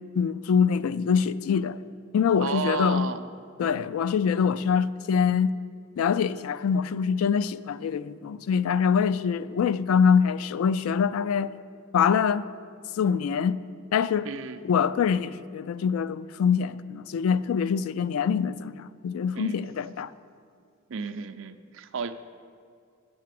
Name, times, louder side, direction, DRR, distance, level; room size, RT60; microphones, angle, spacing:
voice 1, 0.1-1.8 2.1-3.1 3.6-5.5 6.0-11.5 11.9-12.5 13.0-13.6 13.9-14.3 14.6-20.1, left 6 dB, 85° left, 0.3 m, -24 dB
voice 2, 2.4-3.3 14.2-14.6 19.4-19.6 20.9-22.1, right 5 dB, 65° right, 0.5 m, -32 dB
7.5 x 5.8 x 7.6 m
head